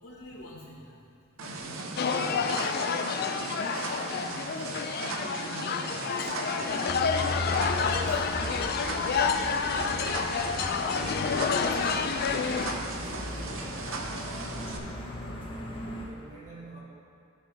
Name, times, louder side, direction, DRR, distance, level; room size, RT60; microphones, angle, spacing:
voice 1, 0.0-0.9 1.4-2.4 3.5-4.6 5.5-6.9 7.7-8.0 11.8-12.1, left 1 dB, 80° left, -3 dB, 1.7 m, -45 dB
sound 1, 1.4-14.8, right 3 dB, 70° right, 0.7 m, -37 dB
sound 2, 2.0-12.8, left 5 dB, 50° left, 0.4 m, -29 dB
sound 3, 6.9-16.1, left 1 dB, 25° left, 1.0 m, -38 dB
voice 2, 11.3-15.6 16.1-16.8, right 1 dB, 35° right, -7 dB, 1.8 m, -49 dB
13.5 x 4.9 x 3.5 m, 2.4 s
head